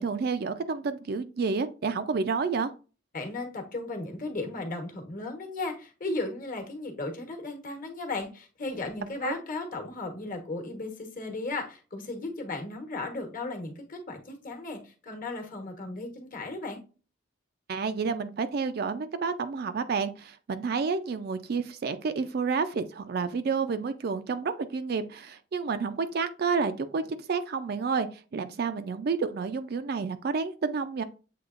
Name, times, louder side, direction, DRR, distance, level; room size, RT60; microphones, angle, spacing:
voice 1, 0.0-2.7 9.2-9.3 17.7-28.1 28.3-31.0, right 5 dB, 55° right, 0.4 m, -30 dB
voice 2, 3.1-16.8, left 2 dB, 45° left, 1.1 m, -35 dB
7.6 x 2.9 x 2.4 m
head